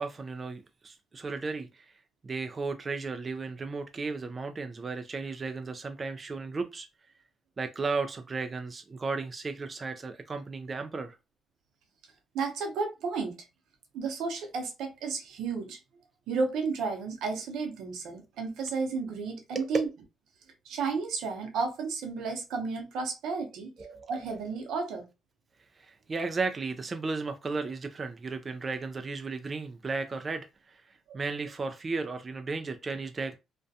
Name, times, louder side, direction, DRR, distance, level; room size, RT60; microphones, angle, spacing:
voice 1, 0.0-6.9 7.6-11.2 19.5-19.7 23.8-24.1 25.8-33.3, right 4 dB, 35° right, 0.3 m, -35 dB
voice 2, 12.3-13.4 13.9-15.8 16.3-19.9 20.7-23.7 24.1-25.0 31.1-31.2, right 4 dB, 85° right, 0.7 m, -32 dB
2.3 x 2.1 x 2.6 m
cardioid pair, 90°, 0 cm